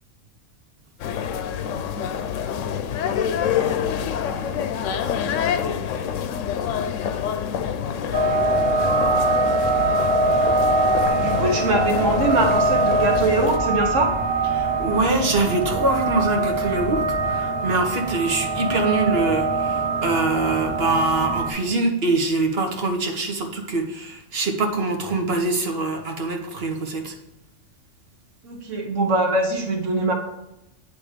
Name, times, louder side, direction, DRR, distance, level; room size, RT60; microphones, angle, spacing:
sound 1, 1.0-13.6, left 8 dB, 85° left, 0.9 m, -27 dB
sound 2, 8.1-21.5, right 2 dB, 35° right, 1.6 m, -23 dB
voice 1, 11.0-14.1 28.4-30.1, right 2 dB, 85° right, 2 dB, 1.4 m, -22 dB
voice 2, 14.5-27.1, right 3 dB, 55° right, 3 dB, 1.3 m, -24 dB
9.1 x 3.4 x 5.0 m, 0.87 s
omnidirectional pair, 1.2 m